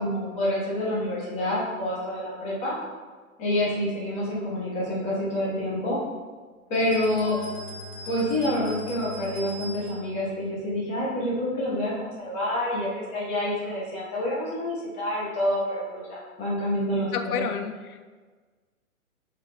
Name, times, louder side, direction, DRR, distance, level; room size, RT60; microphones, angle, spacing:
voice 1, 0.0-2.7 3.4-6.0 6.7-7.4 8.0-17.4, left 1 dB, 15° left, -7 dB, 1.0 m, -27 dB
Bowed string instrument, 6.6-11.1, left 3 dB, 60° left, 1.5 m, -45 dB
sound 1, 6.7-10.1, right 1 dB, 35° left, 0.7 m, -42 dB
voice 2, 17.0-18.0, left 6 dB, 90° left, 7 dB, 0.5 m, -31 dB
5.8 x 3.8 x 2.2 m, 1.4 s
hypercardioid pair, 145°, 43 cm